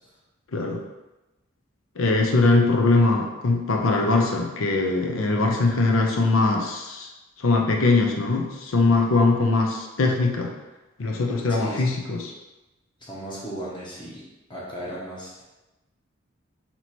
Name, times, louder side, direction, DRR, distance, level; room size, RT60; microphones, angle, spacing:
voice 1, 2.0-7.1 7.4-10.5 11.0-12.3, left 3 dB, 90° left, 2 dB, 0.6 m, -21 dB
voice 2, 11.5-11.9 13.0-14.2 14.5-15.4, right 1 dB, 25° left, -6 dB, 0.9 m, -36 dB
3.0 x 2.9 x 4.3 m, 1.0 s
head